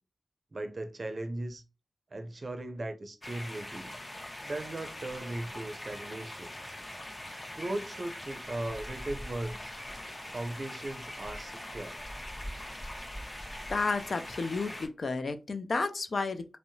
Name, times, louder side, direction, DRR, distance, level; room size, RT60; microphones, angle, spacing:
voice 1, 0.5-1.6 2.1-3.9 4.4-6.5 7.5-9.7 10.3-12.0, right 1 dB, 50° right, 0.5 m, -38 dB
sound 1, 3.2-14.9, left 1 dB, 30° left, 0.8 m, -42 dB
voice 2, 13.7-16.6, left 3 dB, 65° left, 0.3 m, -32 dB
2.7 x 2.0 x 2.6 m
cardioid pair, 50°, 0 cm